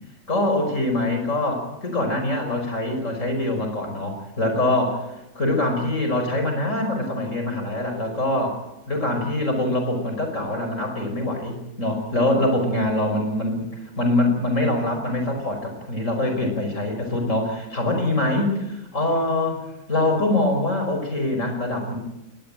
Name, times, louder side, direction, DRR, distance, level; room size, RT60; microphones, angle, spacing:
voice 1, 0.3-8.6 8.9-22.0, left 1 dB, 45° left, 5 dB, 5.7 m, -24 dB
20.0 x 20.0 x 9.0 m, 0.93 s
omnidirectional pair, 1.9 m